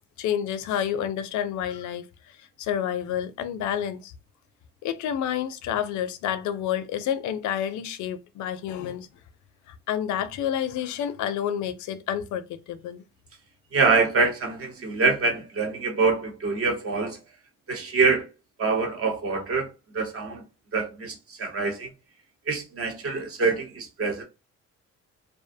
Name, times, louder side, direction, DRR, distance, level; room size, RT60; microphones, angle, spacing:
voice 1, 0.2-4.1 4.8-9.1 9.7-13.0, left 9 dB, 75° left, 0.5 m, -29 dB
voice 2, 13.7-17.2 17.7-18.3 18.6-20.4 20.7-21.9 22.5-24.2, right 4 dB, 50° right, 0.9 m, -25 dB
2.5 x 2.0 x 2.5 m
cardioid pair, 90°, 30 cm